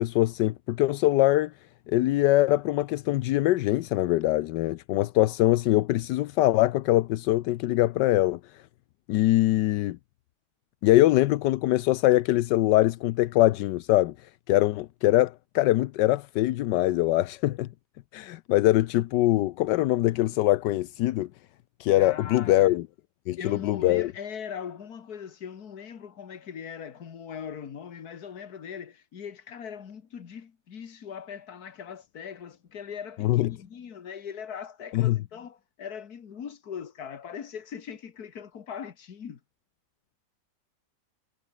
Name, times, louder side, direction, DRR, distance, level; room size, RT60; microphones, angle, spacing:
voice 1, 0.0-1.5 1.9-8.4 9.1-10.0 10.8-17.7 18.1-21.3 21.8-22.9 23.3-24.1 33.2-33.5 34.9-35.2, left 16 dB, 85° left, 1.3 m, -23 dB
voice 2, 21.9-22.8 23.4-39.4, left 7 dB, 60° left, 2.0 m, -40 dB
omnidirectional pair, 1.9 m